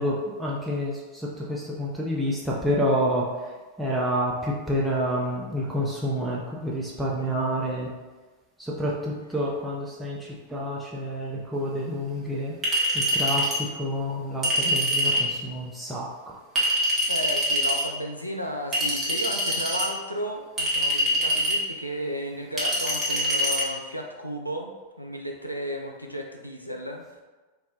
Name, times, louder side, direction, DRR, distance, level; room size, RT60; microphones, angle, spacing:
voice 1, 0.0-7.9 8.6-12.6 12.9-16.4, equal, ahead, -6 dB, 0.5 m, -28 dB
Chink clink, 12.6-13.6 14.4-15.3 16.6-17.8 18.7-19.9 20.6-21.6 22.6-23.6, equal, 20° right, 0.9 m, -24 dB
voice 2, 17.1-24.7 25.0-27.2, equal, 90° left, 1 dB, 0.4 m, -34 dB
2.5 x 2.1 x 3.7 m, 1.2 s
figure-of-eight pair, 90°, 0 cm